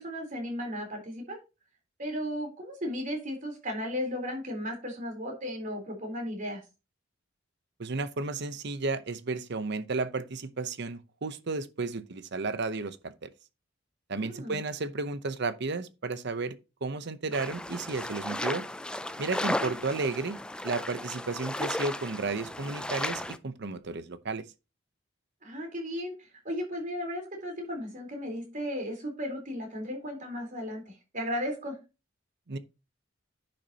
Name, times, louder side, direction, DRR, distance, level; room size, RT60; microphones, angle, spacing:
voice 1, 0.0-1.4 2.0-6.6 14.1-14.6 19.4-19.7 25.4-31.8, equal, 40° right, 3.8 m, -35 dB
voice 2, 7.8-13.3 14.1-16.6 16.8-18.6 19.2-20.4 20.6-24.4 32.5-32.6, right 3 dB, 60° right, 0.8 m, -33 dB
sound 1, 17.3-23.4, left 1 dB, 5° left, 0.4 m, -35 dB
10.5 x 6.3 x 2.8 m
head